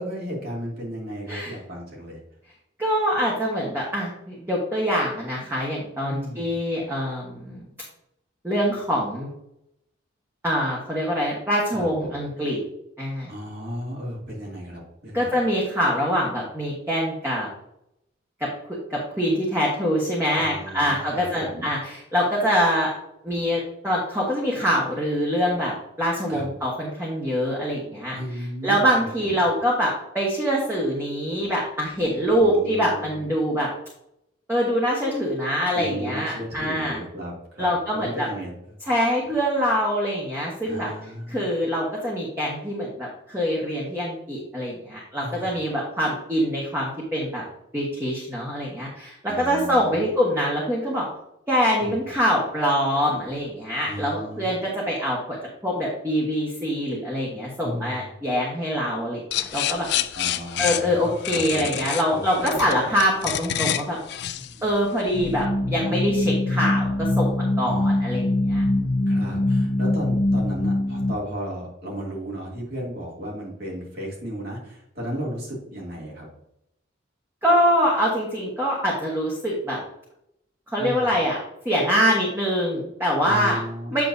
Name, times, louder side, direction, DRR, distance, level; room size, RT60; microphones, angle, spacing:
voice 1, 0.0-2.2 6.1-6.5 11.7-12.2 13.3-15.4 20.4-21.7 26.3-26.5 28.1-29.4 32.3-33.3 35.7-38.8 40.7-41.5 45.2-45.6 49.3-50.1 51.8-51.9 53.8-54.5 57.6-58.1 60.1-62.7 64.4-64.6 67.6-68.3 69.1-76.3 80.8-81.1 83.2-84.0, equal, 50° right, -4 dB, 2.5 m, -35 dB
voice 2, 2.8-7.6 8.4-9.3 10.4-12.6 13.0-13.3 15.1-17.5 18.7-22.9 23.2-28.2 28.6-33.7 34.5-37.0 37.6-38.3 38.9-40.9 41.3-47.4 47.7-51.1 51.5-55.4 55.6-59.9 60.6-64.0 64.6-67.3 67.6-68.9 77.4-79.8 80.7-81.4 81.6-83.6 83.9-84.0, equal, 10° right, -4 dB, 1.3 m, -24 dB
sound 1, 59.3-65.4, left 11 dB, 55° left, 0.3 m, -28 dB
sound 2, 65.1-71.1, left 1 dB, 85° left, 1.0 m, -23 dB
8.5 x 6.5 x 2.7 m, 0.79 s
head